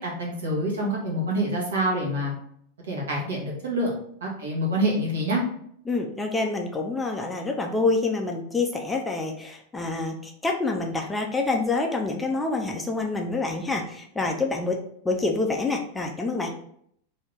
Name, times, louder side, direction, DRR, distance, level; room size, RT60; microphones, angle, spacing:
voice 1, 0.0-2.3 2.9-3.9 4.2-5.4, right 1 dB, 65° right, -3 dB, 1.1 m, -26 dB
voice 2, 5.9-16.5, left 3 dB, 10° left, 2 dB, 0.4 m, -27 dB
2.8 x 2.7 x 3.4 m, 0.68 s
figure-of-eight pair, 90°, 0 cm